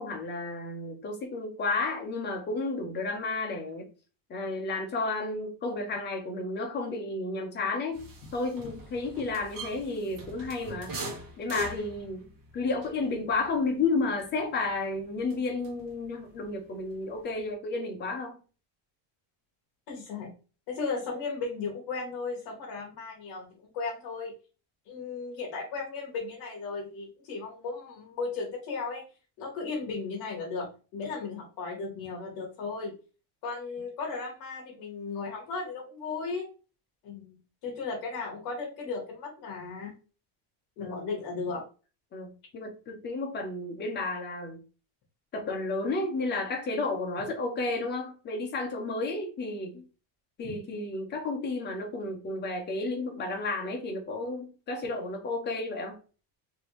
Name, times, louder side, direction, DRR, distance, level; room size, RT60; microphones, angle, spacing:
voice 1, 0.0-3.9 4.3-8.0 8.3-10.9 11.4-12.3 12.5-18.4 40.8-41.0 42.1-44.6 45.3-49.8 50.4-56.0, left 3 dB, 20° left, 0.6 m, -32 dB
sound 1, 7.9-16.1 16.3-17.5, right 1 dB, 45° right, 1.1 m, -43 dB
voice 2, 19.9-20.3 20.7-24.3 24.9-29.0 29.4-32.9 33.4-36.5 37.0-37.3 37.6-39.9 40.8-41.6 50.4-50.5, left 4 dB, 50° left, 1.1 m, -35 dB
3.4 x 2.7 x 3.0 m
cardioid pair, 165°, 50 cm